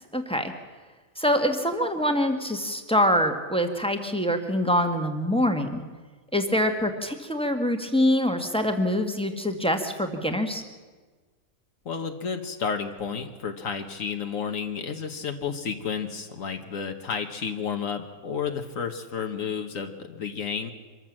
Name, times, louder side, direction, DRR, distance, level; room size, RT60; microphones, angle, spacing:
voice 1, 0.1-0.5 1.2-5.8 6.3-10.6, equal, 5° left, 5 dB, 1.5 m, -25 dB
voice 2, 11.8-20.7, left 6 dB, 70° left, 6 dB, 1.6 m, -31 dB
25.0 x 14.0 x 7.5 m, 1.4 s
omnidirectional pair, 1.5 m